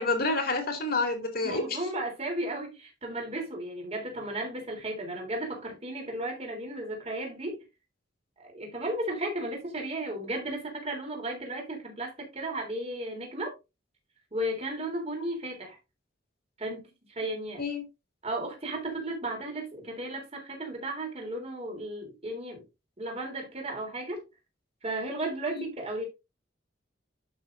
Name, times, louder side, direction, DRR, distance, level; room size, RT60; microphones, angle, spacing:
voice 1, 0.0-1.8 17.6-17.9 25.6-25.7, left 3 dB, 50° left, 2.5 m, -28 dB
voice 2, 1.4-7.6 8.4-13.5 14.3-15.8 16.6-16.9 17.1-17.7 18.2-22.6 23.0-24.3 24.8-26.0, right 1 dB, 35° right, 3.4 m, -34 dB
11.5 x 6.1 x 2.6 m
head